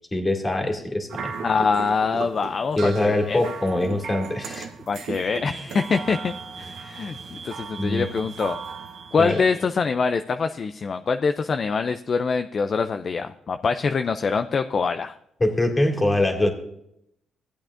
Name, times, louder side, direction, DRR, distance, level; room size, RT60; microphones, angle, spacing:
voice 1, 0.1-1.3 2.8-4.7 5.4-5.6 7.8-8.1 9.2-9.4 15.4-16.5, left 1 dB, 20° left, 2 dB, 2.1 m, -23 dB
sound 1, 1.1-9.7, right 6 dB, 70° right, 1.0 m, -37 dB
voice 2, 1.4-3.4 4.9-8.6 9.1-15.2, left 5 dB, 45° left, 8 dB, 0.4 m, -24 dB
15.5 x 8.4 x 2.5 m, 0.75 s
cardioid pair, 90°, 0 cm